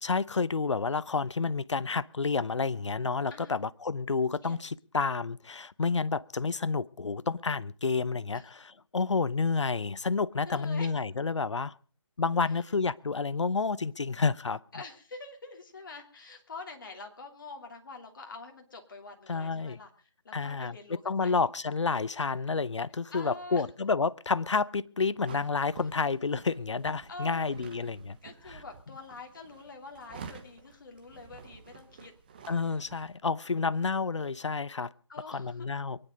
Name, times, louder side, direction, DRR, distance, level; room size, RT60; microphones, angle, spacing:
voice 1, 0.0-11.7 12.2-14.6 19.3-19.8 20.3-20.8 21.0-28.2 28.5-28.6 32.5-34.9 35.3-36.0, left 4 dB, 65° left, 0.8 m, -30 dB
voice 2, 10.4-10.9 12.4-12.5 14.7-19.9 20.2-21.4 23.1-23.6 27.1-27.5 28.2-32.1 35.1-35.7, left 3 dB, 40° left, 2.8 m, -45 dB
sound 1, 25.3-33.2, right 5 dB, 20° right, 1.0 m, -50 dB
23.5 x 10.0 x 5.2 m
figure-of-eight pair, 165°, 16 cm